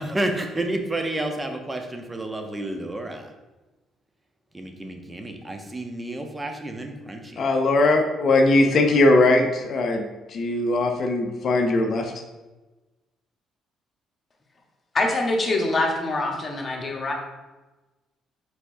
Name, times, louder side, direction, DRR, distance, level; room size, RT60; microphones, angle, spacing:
voice 1, 0.0-3.3 4.5-7.4, right 1 dB, 20° right, 4 dB, 0.7 m, -30 dB
voice 2, 7.4-10.0 10.3-12.1, left 2 dB, 55° left, 4 dB, 0.5 m, -20 dB
voice 3, 14.9-17.1, left 2 dB, 35° left, 0 dB, 1.1 m, -24 dB
4.4 x 4.2 x 2.6 m, 1.1 s
hypercardioid pair, 60°, 0 cm